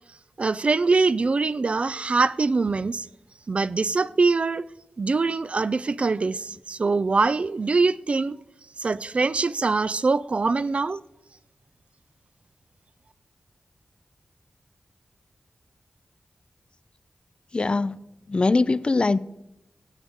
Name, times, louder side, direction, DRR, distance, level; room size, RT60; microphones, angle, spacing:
voice 1, 0.4-3.1 3.5-4.7 5.0-8.4 8.8-11.0, right 3 dB, 50° right, 0.3 m, -23 dB
voice 2, 17.5-18.0 18.3-19.2, left 3 dB, 40° left, 0.4 m, -22 dB
17.0 x 8.1 x 3.6 m
cardioid pair, 65°, 3 cm